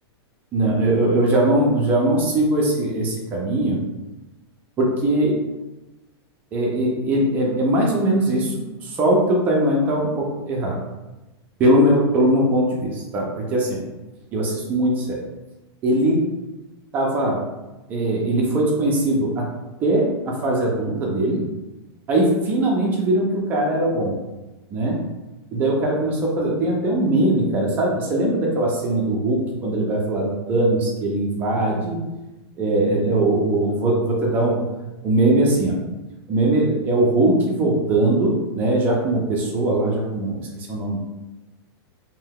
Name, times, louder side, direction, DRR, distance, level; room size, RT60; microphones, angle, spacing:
voice 1, 0.5-3.8 4.8-5.4 6.5-10.8 11.6-13.8 14.3-15.2 15.8-16.2 16.9-17.4 17.9-19.5 19.8-21.4 22.1-24.2 24.7-25.0 25.5-32.0 32.6-34.6 35.0-35.8 36.3-41.0, right 1 dB, 15° right, -2 dB, 0.3 m, -20 dB
2.7 x 2.2 x 3.5 m, 1.1 s
supercardioid pair, 170°, 14 cm